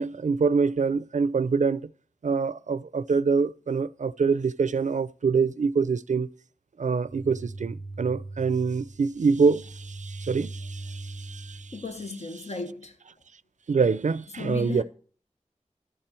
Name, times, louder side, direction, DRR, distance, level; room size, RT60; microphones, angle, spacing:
voice 1, 0.0-1.8 2.2-6.3 6.8-11.6 13.7-14.8, right 5 dB, 75° right, 0.4 m, -25 dB
sound 1, 7.0-12.0, right 2 dB, 35° left, 2.6 m, -40 dB
voice 2, 11.7-13.0 14.3-14.8, left 3 dB, 60° left, 1.2 m, -35 dB
11.5 x 4.4 x 6.7 m
wide cardioid pair, 50°, 13 cm